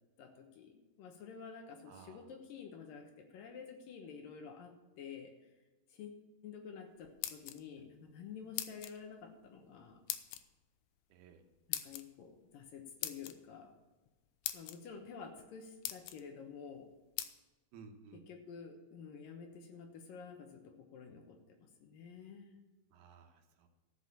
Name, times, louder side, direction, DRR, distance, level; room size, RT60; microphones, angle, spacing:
voice 1, 0.2-5.3 5.9-6.2 6.4-10.0 11.7-13.7 14.5-16.9 18.1-22.6, left 6 dB, 70° left, 4 dB, 2.6 m, -50 dB
voice 2, 1.9-2.2 11.1-11.4 17.7-18.2 22.9-23.7, right 6 dB, 80° right, 5 dB, 3.0 m, -56 dB
sound 1, 7.0-7.9 8.6-9.0 10.1-10.4 11.7-12.0 13.0-13.4 14.1-14.2 14.4-14.8 15.4-15.5 15.8-16.2 17.2-17.3, left 13 dB, 85° left, 2.7 m, -39 dB
13.5 x 6.2 x 7.2 m, 1.1 s
omnidirectional pair, 4.5 m